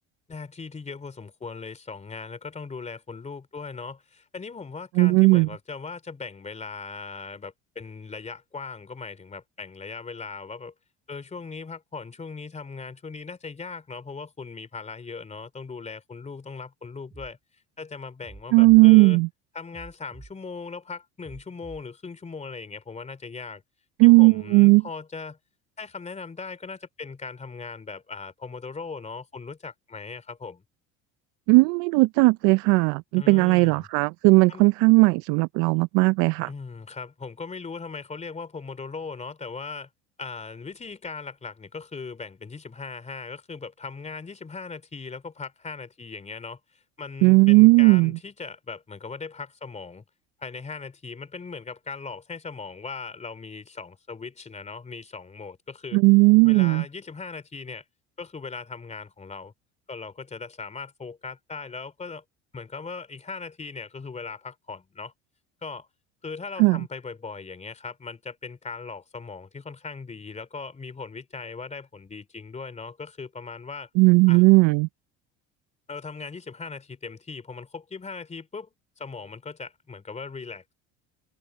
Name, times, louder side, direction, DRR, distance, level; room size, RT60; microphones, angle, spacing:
voice 1, 0.3-10.7 11.1-17.4 17.8-19.2 19.5-23.6 24.0-25.4 25.8-30.6 33.1-33.9 34.5-34.7 36.5-39.9 40.2-50.0 50.4-56.0 56.4-57.8 58.2-59.5 59.9-62.2 62.5-65.1 65.6-65.9 66.2-73.9 74.3-74.4 75.9-80.7, left 4 dB, 20° left, 3.0 m, -39 dB
voice 2, 5.0-5.5 18.5-19.3 24.0-24.8 31.5-36.5 47.2-48.1 55.9-56.8 66.6-66.8 74.0-74.9, right 25 dB, 75° right, 0.5 m, -17 dB
sound 1, 17.1-17.3 18.2-18.8 19.7-20.3 21.2-21.8, right 3 dB, 15° right, 5.0 m, -46 dB
open air
supercardioid pair, 95°, 30 cm